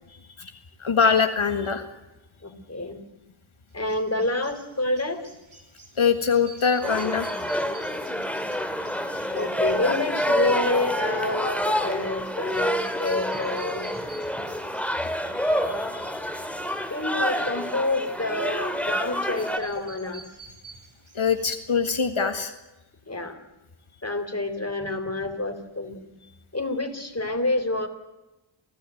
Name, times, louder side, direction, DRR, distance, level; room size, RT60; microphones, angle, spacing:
voice 1, 0.1-0.5 0.8-1.9 6.0-7.3 9.1-9.4 15.2-16.9 21.1-22.5, left 6 dB, 90° left, 6 dB, 1.8 m, -25 dB
voice 2, 2.4-3.0 3.7-5.2 7.8-8.2 9.3-13.9 16.9-20.3 22.2-22.3 23.1-23.4 24.0-26.0 26.5-27.9, left 2 dB, 30° left, 6 dB, 3.7 m, -28 dB
sound 1, 3.7-21.8, right 4 dB, 75° right, 5.2 m, -51 dB
sound 2, 6.8-19.6, equal, 5° left, 2.5 m, -28 dB
29.0 x 16.5 x 9.2 m, 1.0 s
wide cardioid pair, 55°, 47 cm